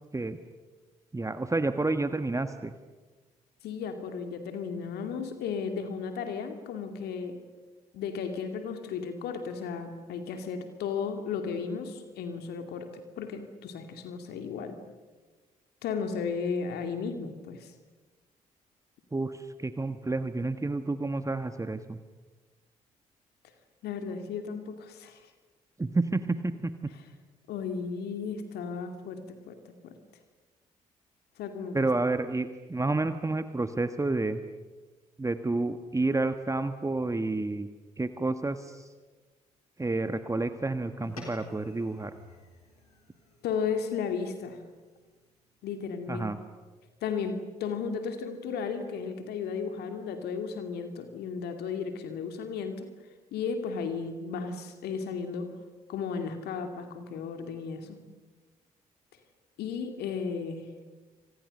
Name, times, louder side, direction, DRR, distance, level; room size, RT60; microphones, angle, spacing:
voice 1, 1.1-2.7 19.1-22.0 25.8-26.9 31.7-34.4 35.2-37.7 38.0-38.9 39.8-42.1 46.1-46.4, right 2 dB, 15° right, 9 dB, 1.4 m, -30 dB
voice 2, 3.6-7.4 7.9-14.8 15.8-17.7 23.8-25.3 27.5-30.0 31.4-31.9 43.4-44.6 45.6-46.3 47.0-52.9 53.3-55.6 55.9-58.0 59.6-60.7, left 6 dB, 65° left, 7 dB, 2.5 m, -34 dB
sound 1, 41.0-45.6, left 2 dB, 90° left, 3.7 m, -51 dB
29.0 x 26.0 x 6.6 m, 1.3 s
figure-of-eight pair, 45°, 18 cm